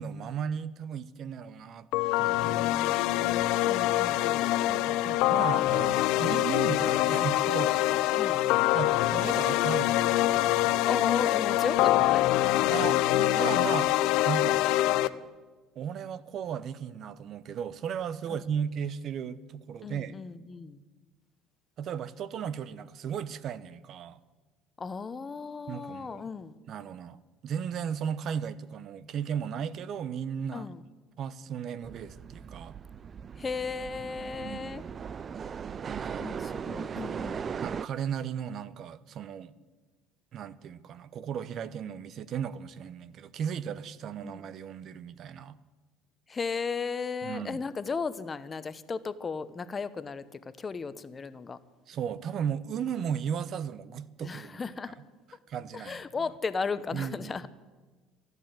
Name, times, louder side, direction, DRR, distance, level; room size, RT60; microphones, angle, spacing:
voice 1, 0.0-1.9 2.2-3.1 4.6-7.8 8.7-10.7 12.7-13.9 14.2-14.6 15.8-20.1 21.8-24.2 25.7-26.3 26.7-27.2 27.4-30.7 31.2-32.7 34.3-34.8 35.9-36.3 37.6-39.5 40.3-45.6 47.2-47.6 51.9-54.6 55.3-56.0 56.9-57.3, right 8 dB, 55° right, 0.8 m, -35 dB
sound 1, 1.9-15.1, left 15 dB, 75° left, 0.6 m, -25 dB
voice 2, 2.4-4.5 8.1-8.5 10.8-12.2 19.8-20.8 24.8-26.6 30.5-30.8 33.4-34.8 36.2-37.5 44.2-44.4 46.3-51.6 54.2-55.0 55.7-57.5, left 5 dB, 30° left, 0.9 m, -35 dB
sound 2, 31.8-37.9, right 7 dB, 40° right, 0.4 m, -38 dB
15.0 x 11.0 x 8.9 m
supercardioid pair, 85°, 0 cm